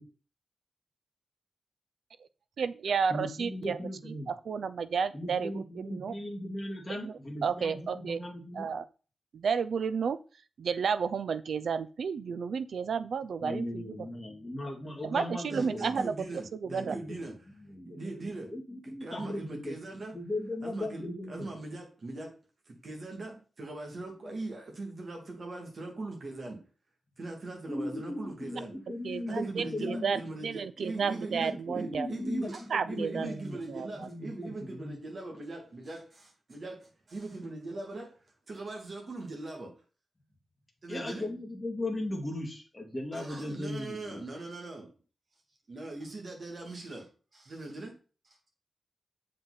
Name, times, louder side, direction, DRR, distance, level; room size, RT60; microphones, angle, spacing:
voice 1, 2.6-3.8 4.3-6.1 6.9-7.1 7.4-8.2 8.5-8.8 9.3-10.2 10.6-14.1 15.0-17.0 28.9-32.1 32.7-33.3 33.5-34.1, right 6 dB, 80° right, 0.5 m, -32 dB
voice 2, 3.1-4.3 5.1-8.7 13.4-16.0 16.7-17.3 17.7-19.8 20.1-21.5 27.7-30.2 31.7-33.6 33.9-35.0 40.9-44.2, left 1 dB, 15° left, 2.1 m, -38 dB
voice 3, 15.5-17.3 17.8-18.5 18.8-20.1 20.6-22.4 22.7-26.6 27.2-28.8 29.3-38.2 38.5-39.8 40.8-41.3 43.1-44.9 45.7-48.0 48.2-48.4, right 2 dB, 45° right, 2.6 m, -41 dB
7.3 x 5.3 x 4.1 m
wide cardioid pair, 125°, 0 cm